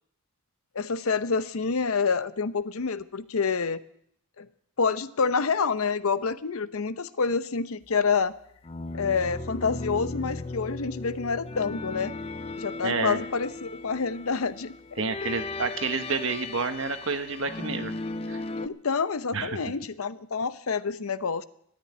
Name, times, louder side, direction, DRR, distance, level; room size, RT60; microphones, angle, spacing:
voice 1, 0.7-3.8 4.4-4.5 4.8-8.3 8.9-12.1 12.6-15.4 18.6-21.4, left 5 dB, 75° left, 14 dB, 0.7 m, -28 dB
sound 1, 8.6-18.7, left 2 dB, 25° left, 0.5 m, -36 dB
voice 2, 12.8-13.2 15.0-17.9 18.3-18.4 19.3-19.6, right 4 dB, 60° right, 8 dB, 1.3 m, -29 dB
13.5 x 9.7 x 9.4 m, 0.71 s
head